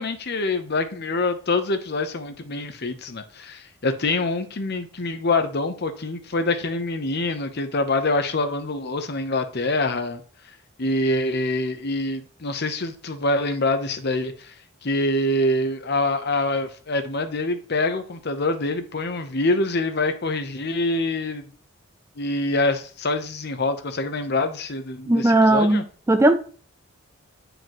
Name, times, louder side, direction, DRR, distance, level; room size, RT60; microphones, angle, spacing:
voice 1, 0.0-10.2 10.8-14.5 14.8-21.5 22.2-25.8, left 2 dB, 50° left, 0.9 m, -25 dB
voice 2, 25.1-25.8 26.1-26.4, right 2 dB, 15° right, 0.4 m, -17 dB
9.7 x 5.0 x 3.0 m
head